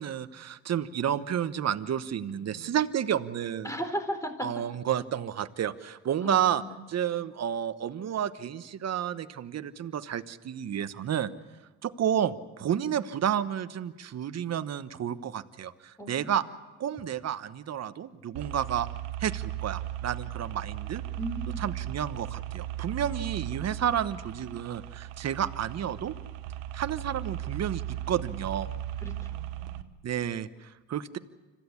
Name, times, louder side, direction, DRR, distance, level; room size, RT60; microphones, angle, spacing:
voice 1, 0.0-3.7 4.4-6.6 6.9-11.3 11.8-16.4 16.8-18.9 19.2-21.0 21.6-26.1 26.7-28.7 30.0-31.2, right 9 dB, 50° right, 12 dB, 1.1 m, -31 dB
voice 2, 3.6-4.3 6.2-6.8 12.8-12.9 16.0-16.4 21.2-21.6 29.0-29.8, equal, 10° left, 7 dB, 4.1 m, -36 dB
sound 1, 18.4-29.8, right 13 dB, 90° right, 1.1 m, -37 dB
26.0 x 15.5 x 8.5 m, 1.2 s
supercardioid pair, 75°, 34 cm